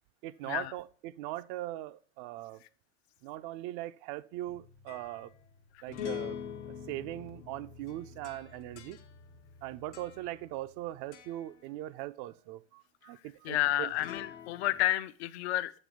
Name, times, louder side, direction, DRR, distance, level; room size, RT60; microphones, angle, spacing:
voice 1, 0.2-2.6 3.2-5.3 5.8-6.4 6.9-9.0 9.6-13.9, right 15 dB, 40° right, 0.4 m, -40 dB
sound 1, 4.5-10.8 11.1-11.5 13.9-14.8, left 9 dB, 85° left, 1.2 m, -45 dB
voice 2, 13.4-15.7, left 15 dB, 65° left, 0.6 m, -30 dB
8.5 x 3.0 x 6.3 m
hypercardioid pair, 110°, 35 cm